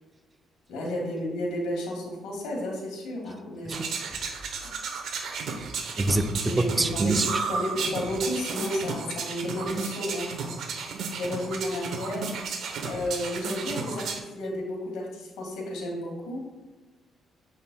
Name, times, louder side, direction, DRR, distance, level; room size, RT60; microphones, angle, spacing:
voice 1, 0.7-4.0 6.4-10.5 11.1-12.3 12.8-16.5, left 1 dB, 85° left, 0 dB, 1.8 m, -32 dB
sound 1, 3.7-14.2, right 5 dB, 75° right, 0.9 m, -33 dB
voice 2, 6.0-7.4, right 2 dB, 25° right, 8 dB, 0.5 m, -26 dB
8.0 x 5.4 x 2.3 m, 1.3 s
cardioid pair, 90°, 0 cm